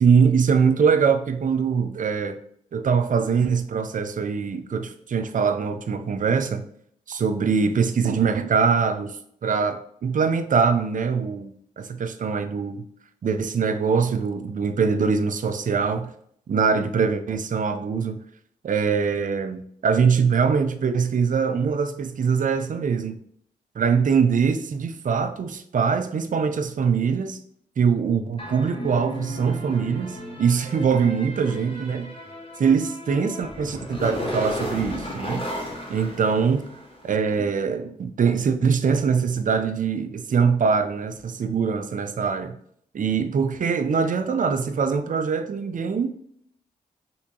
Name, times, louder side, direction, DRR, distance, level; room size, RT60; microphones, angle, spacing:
voice 1, 0.0-2.4 2.7-6.7 7.1-9.2 9.4-12.8 13.2-16.1 16.5-18.2 18.6-23.2 23.8-27.4 27.8-32.1 32.6-35.5 35.9-36.7 37.0-42.6 42.9-46.1, right 6 dB, 50° right, 0.4 m, -23 dB
sound 1, 28.4-37.1, equal, 30° left, 1.1 m, -34 dB
3.3 x 2.8 x 2.7 m
supercardioid pair, 45°, 17 cm